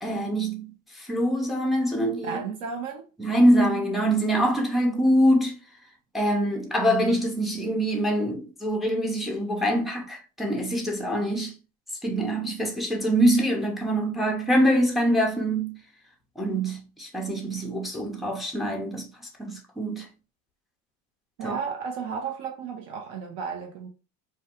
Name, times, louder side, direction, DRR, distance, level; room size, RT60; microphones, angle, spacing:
voice 1, 0.0-0.7 1.0-2.4 3.2-5.6 6.1-11.5 12.0-15.8 16.4-19.1 19.4-20.1 21.4-21.6, equal, ahead, 0.4 m, -24 dB
voice 2, 2.2-3.1 21.4-23.9, right 6 dB, 60° right, 0.6 m, -33 dB
2.3 x 2.2 x 2.8 m
supercardioid pair, 110°, 43 cm